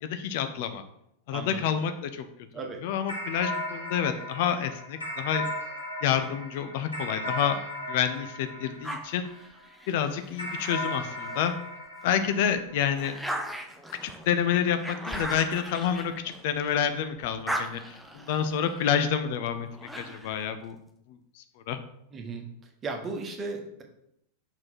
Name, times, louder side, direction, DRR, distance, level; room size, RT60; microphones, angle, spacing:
voice 1, 0.0-0.8 1.3-2.3 2.8-5.5 6.0-7.6 7.9-9.3 9.9-11.5 12.0-13.2 14.0-20.8 21.1-21.8, left 8 dB, 50° left, 9 dB, 0.5 m, -28 dB
voice 2, 1.3-1.6 2.5-2.8 22.1-22.5 22.8-23.8, right 3 dB, 25° right, 3 dB, 1.2 m, -35 dB
sound 1, 3.1-9.7 10.4-13.1, left 1 dB, 75° left, 1.4 m, -36 dB
sound 2, 8.8-11.5 12.0-16.9 17.2-20.5, right 1 dB, ahead, 0.7 m, -39 dB
5.9 x 4.3 x 4.3 m, 0.76 s
figure-of-eight pair, 90°, 0 cm